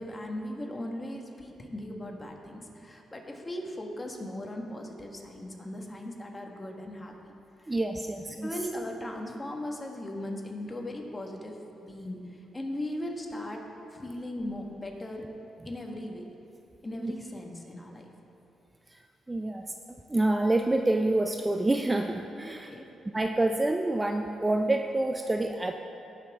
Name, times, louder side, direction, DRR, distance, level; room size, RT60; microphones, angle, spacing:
voice 1, 0.0-7.3 7.6-7.7 8.4-13.6 13.9-15.3 15.6-16.3 16.8-18.1 22.6-22.9, left 1 dB, 20° left, 1 dB, 1.5 m, -38 dB
voice 2, 7.7-8.5 17.0-17.1 19.3-19.6 20.1-22.7 23.1-25.7, right 2 dB, 20° right, 5 dB, 0.4 m, -27 dB
17.0 x 5.8 x 3.6 m, 2.8 s
cardioid pair, 75°, 0 cm